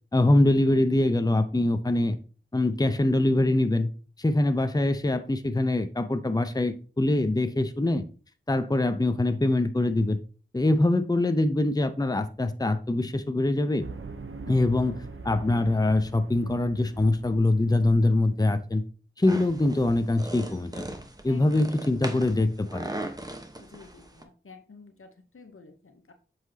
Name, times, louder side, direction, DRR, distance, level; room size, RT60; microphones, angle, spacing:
voice 1, 0.1-2.2 2.5-3.9 4.2-8.0 8.5-10.2 10.5-13.8 14.5-18.8 19.2-20.8 21.2-22.9, left 2 dB, 20° left, 10 dB, 0.6 m, -24 dB
sound 1, 13.8-18.6, right 3 dB, 80° right, 0.6 m, -42 dB
sound 2, 19.2-24.2, right 1 dB, 20° right, 1.0 m, -39 dB
voice 2, 23.6-26.1, left 4 dB, 90° left, 6 dB, 0.9 m, -51 dB
7.9 x 5.7 x 2.8 m, 0.37 s
wide cardioid pair, 45°, 21 cm